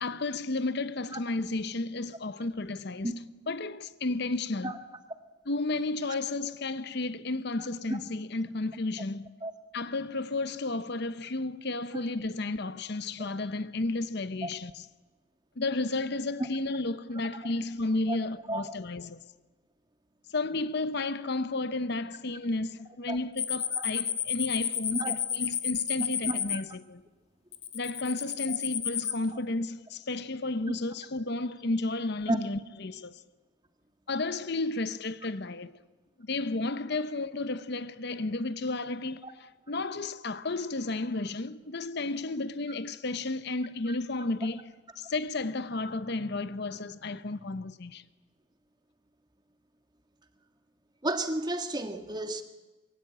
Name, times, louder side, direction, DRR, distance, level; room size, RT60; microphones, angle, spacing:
voice 1, 0.0-3.1 3.5-4.8 5.5-9.3 9.7-14.9 15.6-19.2 20.3-27.0 27.7-33.2 34.1-35.7 36.2-48.0, left 2 dB, 50° left, 0.8 m, -32 dB
sound 1, 23.4-26.6 27.5-29.2, left 9 dB, 30° left, 2.0 m, -30 dB
voice 2, 26.3-26.6 32.3-32.4 39.2-39.3 51.0-52.4, right 1 dB, 20° right, 1.7 m, -32 dB
25.5 x 23.0 x 8.8 m
head